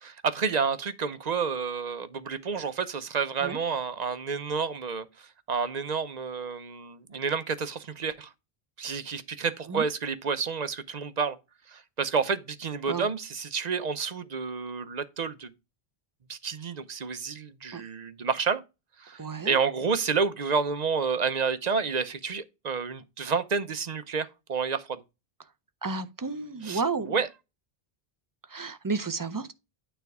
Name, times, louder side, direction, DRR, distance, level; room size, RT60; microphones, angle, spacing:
voice 1, 0.0-8.3 8.8-11.4 11.7-15.5 16.3-18.6 19.0-25.0 26.6-26.8 27.1-27.3, right 5 dB, 45° right, 0.8 m, -30 dB
voice 2, 19.2-19.6 25.8-27.1 28.5-29.5, right 4 dB, 30° right, 0.4 m, -32 dB
9.3 x 3.3 x 4.7 m
omnidirectional pair, 1.0 m